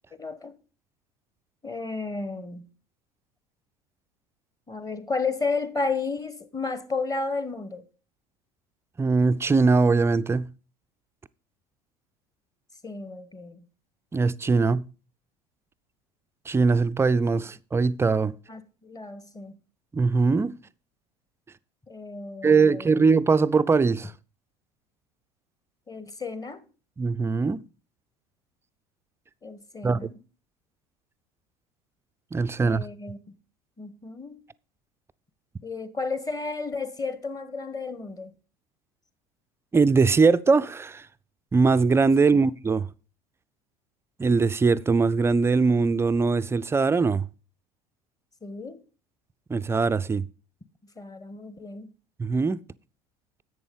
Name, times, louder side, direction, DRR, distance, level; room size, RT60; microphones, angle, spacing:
voice 1, 0.2-0.5 1.6-2.7 4.7-7.8 12.8-13.6 18.5-19.5 21.9-22.9 25.9-26.6 29.4-30.2 32.6-33.2 33.8-34.4 35.6-38.3 42.3-42.4 48.4-48.8 51.0-51.9, left 4 dB, 20° left, 1.1 m, -32 dB
voice 2, 9.0-10.5 14.1-14.8 16.5-18.3 19.9-20.6 22.4-24.1 27.0-27.6 29.8-30.1 32.3-32.9 39.7-41.1 41.5-42.9 44.2-47.3 49.5-50.3 52.2-52.6, right 4 dB, 10° right, 0.4 m, -21 dB
11.0 x 8.2 x 3.7 m
figure-of-eight pair, 65°, 21 cm